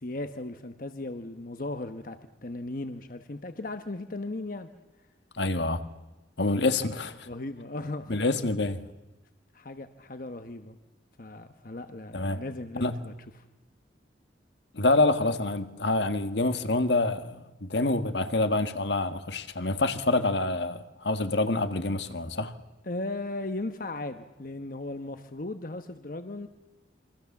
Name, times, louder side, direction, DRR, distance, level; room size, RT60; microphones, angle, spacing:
voice 1, 0.0-4.7 7.3-8.2 9.5-10.8 11.2-13.1 22.9-26.5, left 2 dB, 50° left, 1.1 m, -37 dB
voice 2, 5.3-5.8 6.4-7.3 8.1-8.8 12.1-12.4 12.8-13.0 14.7-22.6, left 2 dB, 75° left, 1.6 m, -27 dB
27.5 x 24.5 x 7.3 m
head